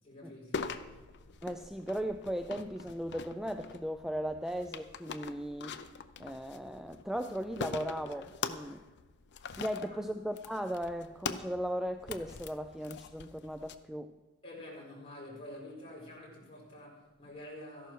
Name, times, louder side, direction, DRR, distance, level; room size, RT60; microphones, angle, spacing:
voice 1, 0.0-0.8 9.8-10.0 14.4-17.9, left 1 dB, 25° left, -4 dB, 4.9 m, -48 dB
sound 1, 0.5-13.7, left 5 dB, 50° left, 0.6 m, -43 dB
voice 2, 1.4-5.8 6.2-8.8 9.6-14.1, equal, ahead, 8 dB, 0.3 m, -37 dB
13.5 x 11.5 x 4.6 m, 1.2 s
head